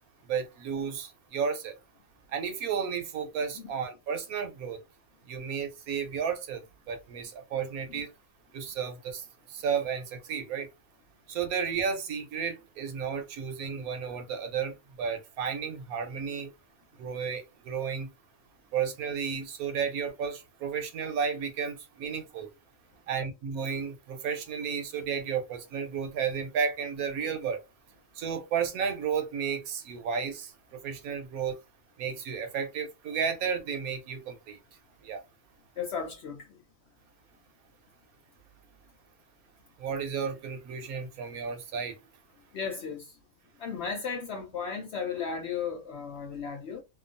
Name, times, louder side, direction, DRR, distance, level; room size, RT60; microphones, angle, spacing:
voice 1, 0.3-1.8 2.3-4.8 5.3-8.1 8.5-10.7 11.3-16.5 17.0-18.1 18.7-22.5 23.1-27.6 28.1-31.6 32.0-34.6 35.0-35.2 39.8-42.0, right 6 dB, 75° right, 1.1 m, -33 dB
voice 2, 35.8-36.6 42.5-43.2 43.6-46.8, left 6 dB, 65° left, 0.7 m, -35 dB
2.9 x 2.3 x 2.5 m
omnidirectional pair, 1.6 m